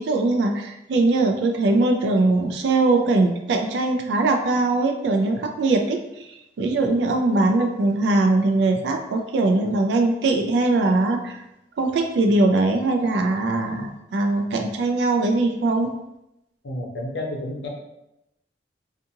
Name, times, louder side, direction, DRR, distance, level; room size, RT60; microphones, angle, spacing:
voice 1, 0.0-11.4 11.8-15.9, right 2 dB, 75° right, 3 dB, 0.3 m, -21 dB
voice 2, 16.6-17.7, left 1 dB, 80° left, -1 dB, 0.6 m, -30 dB
2.6 x 2.4 x 2.7 m, 0.88 s
head